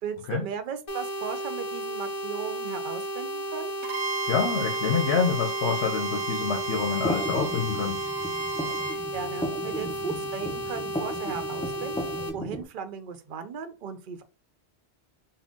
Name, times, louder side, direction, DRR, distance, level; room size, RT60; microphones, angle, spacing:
voice 1, 0.0-3.7 9.1-11.9 12.3-14.2, right 7 dB, 55° right, 0.7 m, -36 dB
sound 1, 0.9-12.3, right 1 dB, 35° left, 0.8 m, -34 dB
Bowed string instrument, 3.8-9.0, right 4 dB, 85° right, 0.9 m, -33 dB
voice 2, 4.3-8.0, left 6 dB, 70° left, 0.9 m, -27 dB
sound 2, 6.6-12.6, left 1 dB, 10° left, 0.3 m, -35 dB
3.7 x 2.1 x 3.6 m
omnidirectional pair, 1.1 m